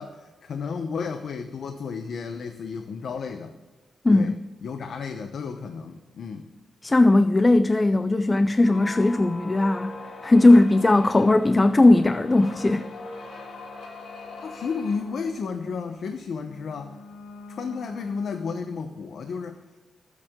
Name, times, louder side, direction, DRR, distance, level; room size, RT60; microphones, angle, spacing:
voice 1, 0.0-3.5 4.1-4.3 4.6-6.5 14.4-17.0 17.5-19.6, left 5 dB, 65° left, 0.8 m, -32 dB
voice 2, 4.0-4.4 6.8-9.9 10.2-12.9, left 2 dB, 20° left, 0.4 m, -18 dB
sound 1, 8.6-18.9, left 3 dB, 90° left, 2.3 m, -42 dB
20.5 x 8.2 x 3.7 m
wide cardioid pair, 155°, 0 cm